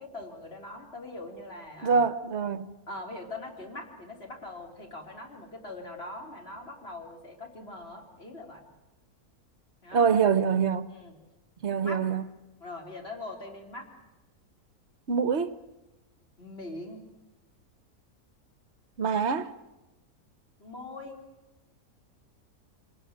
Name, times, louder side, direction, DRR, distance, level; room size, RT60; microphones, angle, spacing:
voice 1, 0.0-2.0 2.9-8.6 9.8-10.1 10.9-11.1 11.8-12.0 12.6-13.9 16.4-17.0 20.6-21.2, left 2 dB, 40° left, 3.9 m, -42 dB
voice 2, 1.8-2.7 9.9-10.9 11.6-12.2 15.1-15.5 19.0-19.5, right 6 dB, 50° right, 1.2 m, -25 dB
26.0 x 18.5 x 8.9 m
omnidirectional pair, 1.6 m